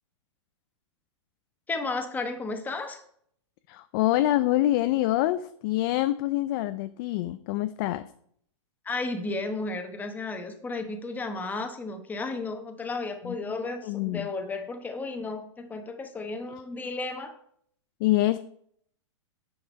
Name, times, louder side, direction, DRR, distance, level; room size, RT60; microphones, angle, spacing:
voice 1, 1.7-3.0 8.8-17.3, left 3 dB, 10° left, 6 dB, 1.0 m, -33 dB
voice 2, 3.7-8.1 13.2-13.5 13.8-14.3 18.0-18.4, left 15 dB, 45° left, 12 dB, 0.4 m, -26 dB
9.4 x 4.8 x 5.4 m, 0.65 s
hypercardioid pair, 135°, 16 cm